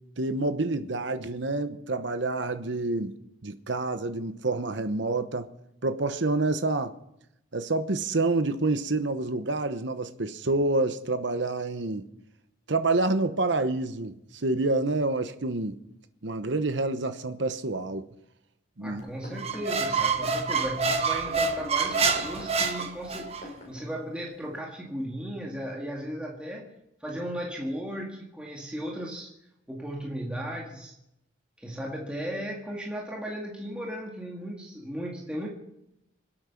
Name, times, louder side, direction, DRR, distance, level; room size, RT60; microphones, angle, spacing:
voice 1, 0.2-3.1 3.4-5.5 5.8-6.9 7.5-12.1 12.7-15.8 16.2-18.0 18.8-19.0, right 2 dB, 70° right, 1.0 m, -28 dB
voice 2, 18.8-26.7 27.0-29.3 29.7-30.9 31.6-35.5, equal, 5° right, 1.8 m, -36 dB
sound 1, 19.0-23.9 24.6-24.7, left 2 dB, 40° left, 5.1 m, -44 dB
Squeak, 19.4-23.4, right 5 dB, 30° right, 1.1 m, -27 dB
25.5 x 8.8 x 5.9 m
head